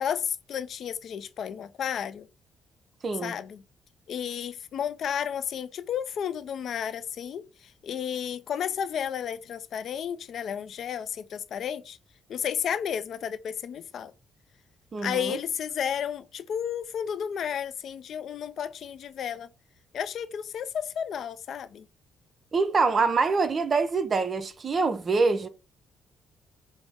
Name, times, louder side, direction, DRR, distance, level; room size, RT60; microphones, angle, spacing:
voice 1, 0.0-2.3 3.2-3.6 4.1-7.4 7.8-12.0 12.3-14.1 15.0-19.5 19.9-21.9, left 8 dB, 65° left, 0.4 m, -32 dB
voice 2, 3.0-3.4 14.9-15.4 22.5-25.5, right 4 dB, 40° right, 0.6 m, -25 dB
5.2 x 2.0 x 3.5 m
cardioid pair, 90°, 0 cm